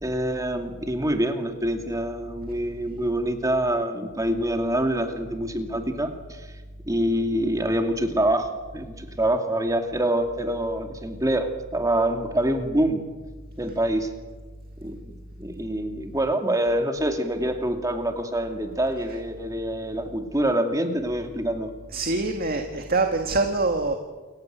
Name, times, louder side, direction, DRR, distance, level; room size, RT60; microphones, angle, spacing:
voice 1, 0.0-6.5 6.9-13.0 13.6-14.1 14.8-21.7, right 1 dB, 15° right, 5 dB, 2.4 m, -26 dB
voice 2, 21.9-23.9, right 3 dB, 45° right, 5 dB, 1.9 m, -24 dB
28.5 x 15.5 x 9.3 m, 1.3 s
head